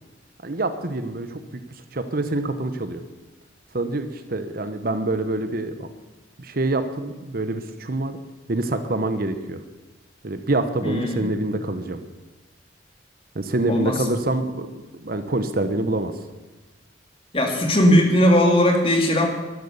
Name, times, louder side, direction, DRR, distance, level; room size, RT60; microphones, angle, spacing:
voice 1, 0.4-1.6 1.9-3.0 3.7-5.9 6.4-8.2 8.5-9.6 10.2-12.0 13.3-16.1, right 2 dB, 50° right, 9 dB, 0.9 m, -26 dB
voice 2, 10.8-11.5 13.7-14.0 17.3-19.3, equal, 30° left, 2 dB, 2.4 m, -18 dB
12.0 x 12.0 x 7.0 m, 1.2 s
head